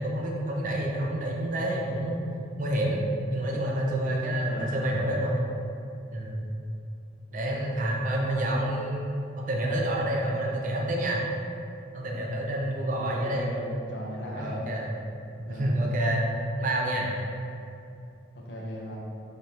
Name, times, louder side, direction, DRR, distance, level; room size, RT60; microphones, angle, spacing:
voice 1, 0.0-2.2 2.6-3.0 3.3-5.5 6.1-6.4 7.3-9.0 9.4-11.2 11.9-13.5 14.4-14.9 15.5-16.3 16.6-17.1, right 1 dB, 45° right, -2 dB, 0.6 m, -28 dB
voice 2, 4.4-5.0 13.0-14.6 15.4-15.8 18.3-19.0, equal, 60° left, -4 dB, 0.8 m, -37 dB
5.4 x 3.1 x 2.9 m, 2.6 s
head